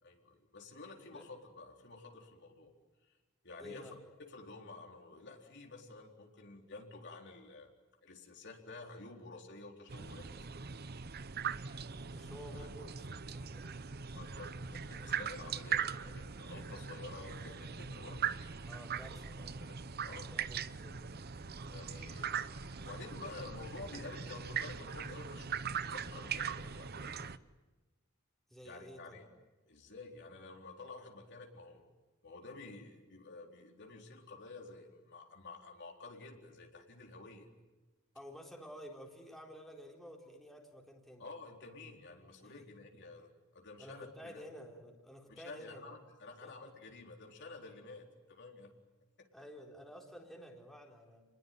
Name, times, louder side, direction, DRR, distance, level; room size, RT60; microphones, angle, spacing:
voice 1, 0.0-2.7 3.4-3.9 4.3-7.7 8.0-10.5 12.5-12.7 14.1-18.3 19.6-19.8 20.0-20.3 21.7-27.3 28.6-29.3 29.7-31.8 32.2-37.5 41.2-44.4 45.3-48.7 49.2-49.3, left 3 dB, 55° left, 1 dB, 4.1 m, -51 dB
voice 2, 3.6-3.9 11.9-13.8 18.7-19.6 19.9-21.4 28.5-29.2 38.1-41.2 42.4-42.5 43.8-45.9 46.4-46.5 49.3-51.2, equal, ahead, -1 dB, 4.0 m, -52 dB
sound 1, 9.9-27.4, right 7 dB, 50° right, 0.8 m, -40 dB
30.0 x 21.0 x 9.4 m, 1.2 s
head